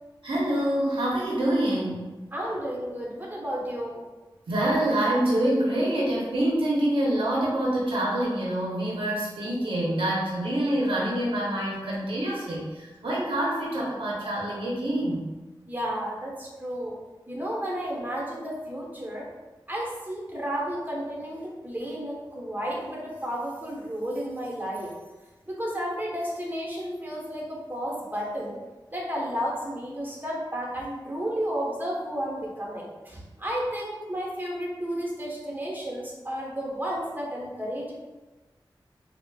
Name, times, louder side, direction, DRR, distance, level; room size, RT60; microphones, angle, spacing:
voice 1, 0.2-2.1 4.5-15.2, right 1 dB, 85° right, -6 dB, 0.7 m, -26 dB
voice 2, 2.3-4.0 15.7-16.9 17.3-19.3 19.7-24.9 25.5-28.5 28.9-37.9, equal, 20° right, -3 dB, 1.0 m, -32 dB
4.3 x 2.0 x 2.3 m, 1.2 s
cardioid pair, 50°, 9 cm